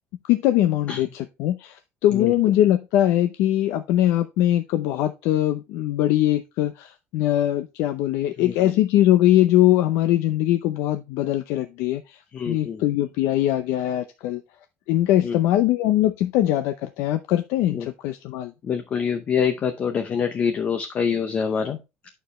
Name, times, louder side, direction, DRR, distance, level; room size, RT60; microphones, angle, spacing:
voice 1, 0.3-12.2 12.5-14.4 14.9-18.5, left 13 dB, 70° left, 9 dB, 0.6 m, -21 dB
voice 2, 8.4-8.7 12.3-12.8 15.2-15.4 17.7-17.9 18.6-21.8, left 7 dB, 30° left, 7 dB, 0.7 m, -25 dB
9.2 x 6.6 x 3.1 m, 0.26 s
cardioid pair, 175°, 5 cm